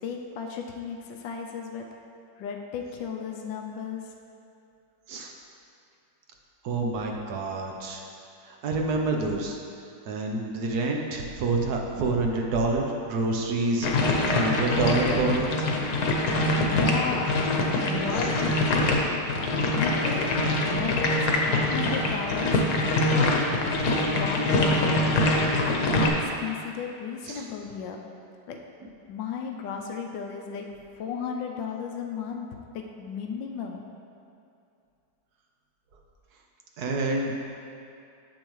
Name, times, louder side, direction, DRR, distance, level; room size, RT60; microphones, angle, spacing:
voice 1, 0.0-1.9 2.4-4.1 16.3-17.5 17.8-19.1 19.7-20.3 20.7-23.3 23.9-25.4 25.6-28.0 28.5-28.6 29.1-30.7 31.0-32.5 32.7-33.9, left 6 dB, 85° left, 2 dB, 1.3 m, -34 dB
voice 2, 6.6-8.0 8.4-9.6 10.1-15.7 18.2-18.3 27.3-27.5 36.8-37.3, right 2 dB, 65° right, 1 dB, 1.2 m, -27 dB
sound 1, 13.8-26.1, left 2 dB, 65° left, 1.4 m, -24 dB
8.9 x 7.5 x 3.1 m, 2.6 s
omnidirectional pair, 2.0 m